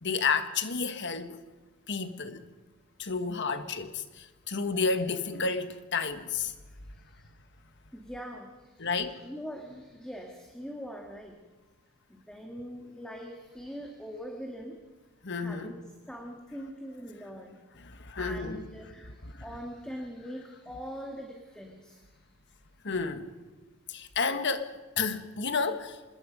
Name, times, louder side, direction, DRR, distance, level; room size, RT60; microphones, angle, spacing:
voice 1, 0.0-1.4 1.9-2.4 3.0-6.5 8.8-9.2 15.2-15.7 17.8-18.6 22.8-23.3 23.9-24.7 25.0-26.0, left 4 dB, 55° left, 1.6 m, -31 dB
voice 2, 7.9-11.4 12.1-14.8 15.4-15.8 16.1-17.6 18.2-22.0, equal, 5° left, 1.9 m, -42 dB
25.5 x 21.0 x 5.3 m
head